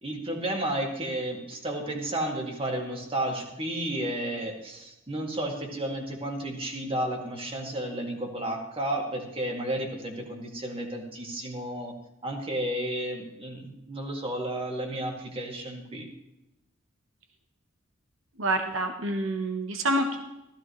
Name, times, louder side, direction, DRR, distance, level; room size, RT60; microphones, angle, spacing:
voice 1, 0.0-11.9 12.2-16.1, right 1 dB, 30° right, 2 dB, 2.2 m, -32 dB
voice 2, 18.4-20.2, right 1 dB, 70° right, 5 dB, 1.2 m, -27 dB
15.0 x 13.5 x 3.2 m, 0.94 s
head